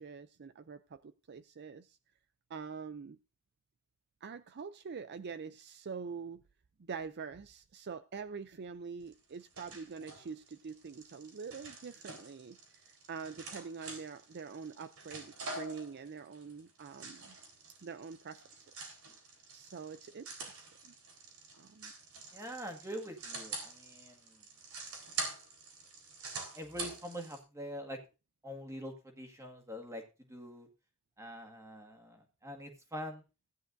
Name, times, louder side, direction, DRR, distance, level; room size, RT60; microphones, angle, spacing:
voice 1, 0.0-2.0 2.5-3.2 4.2-6.4 6.8-17.4 17.8-18.4 18.8-19.0 19.5-20.9 21.5-21.9, right 5 dB, 50° right, 12 dB, 0.5 m, -45 dB
sound 1, 9.1-27.4, right 3 dB, 85° right, 4.1 m, -46 dB
voice 2, 22.3-24.4 26.5-28.0 28.4-30.0 30.3-30.7 31.2-33.2, equal, 15° right, 4 dB, 1.9 m, -44 dB
16.0 x 10.0 x 2.6 m, 0.30 s
head